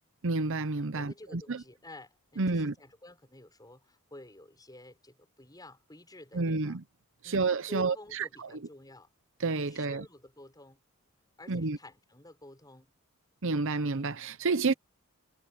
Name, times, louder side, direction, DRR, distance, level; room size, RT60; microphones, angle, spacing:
voice 1, 0.2-1.6 2.4-2.7 6.3-6.8 7.2-8.5 9.4-10.0 11.5-11.8 13.4-14.7, right 3 dB, 60° right, 0.8 m, -30 dB
voice 2, 0.9-6.8 7.2-9.1 9.7-10.8 11.4-12.9, left 1 dB, 20° left, 6.6 m, -50 dB
head